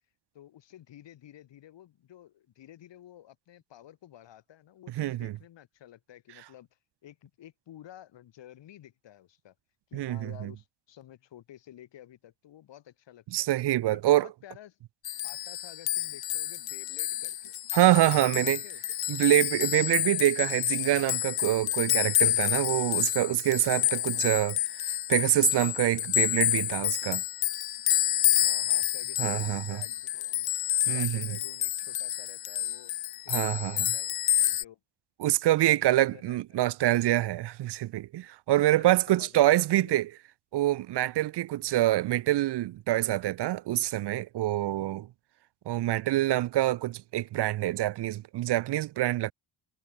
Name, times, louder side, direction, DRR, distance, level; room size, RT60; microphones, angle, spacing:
voice 1, 0.3-9.5 9.9-13.5 13.9-14.8 15.2-17.5 17.9-19.0 23.8-24.3 28.4-30.5 30.9-32.9 33.2-34.8 35.7-36.6 38.7-39.9 41.6-41.9, left 12 dB, 75° left, 4.5 m, -52 dB
voice 2, 5.0-5.3 9.9-10.5 13.3-14.3 17.7-18.6 19.1-24.6 24.9-27.2 29.2-29.8 30.9-31.3 33.3-33.8 35.2-40.1 40.5-45.1 45.7-49.3, right 15 dB, 65° right, 0.7 m, -26 dB
sound 1, 15.1-34.6, left 13 dB, 55° left, 0.7 m, -29 dB
cardioid pair, 140°, 44 cm